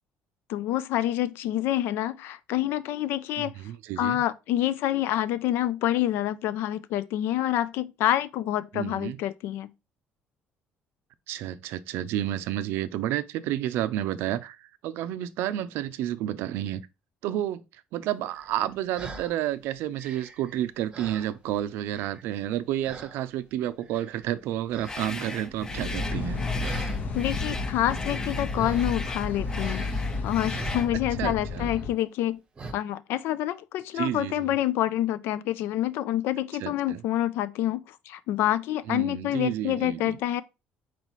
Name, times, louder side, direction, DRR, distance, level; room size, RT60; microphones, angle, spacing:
voice 1, 0.5-3.5 4.0-9.7 27.1-29.8 30.2-32.4 32.7-40.4, left 13 dB, 75° left, 0.4 m, -27 dB
voice 2, 3.4-4.2 8.7-9.2 11.3-16.8 17.2-17.6 17.9-26.4 31.2-31.7 33.9-34.6 36.6-37.0 38.9-40.2, right 12 dB, 80° right, 0.4 m, -30 dB
sound 1, 18.3-19.4 19.8-21.6 21.9-22.5 22.8-23.2 23.8-24.4 24.7-25.0 25.3-27.0 28.5-29.1 29.6-31.3 31.6-31.9 32.6-32.7, right 3 dB, 25° right, 0.8 m, -42 dB
sound 2, 24.8-30.9, left 3 dB, 15° left, 0.4 m, -37 dB
sound 3, 25.7-31.9, left 3 dB, 45° left, 0.7 m, -32 dB
4.4 x 4.0 x 2.9 m
cardioid pair, 135°, 4 cm